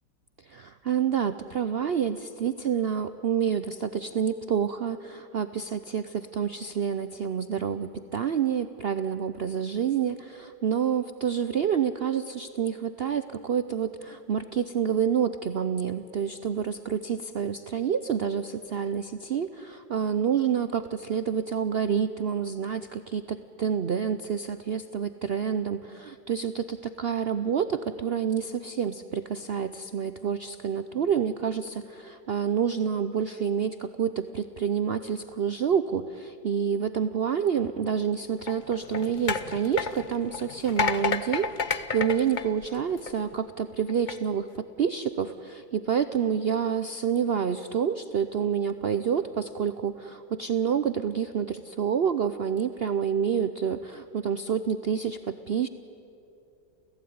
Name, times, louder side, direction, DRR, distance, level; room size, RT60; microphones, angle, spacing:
voice 1, 0.4-55.7, right 7 dB, 90° right, 11 dB, 0.5 m, -28 dB
sound 1, 38.4-43.3 43.9-44.1, left 6 dB, 50° left, 0.6 m, -31 dB
29.5 x 16.0 x 9.4 m, 2.7 s
omnidirectional pair, 1.9 m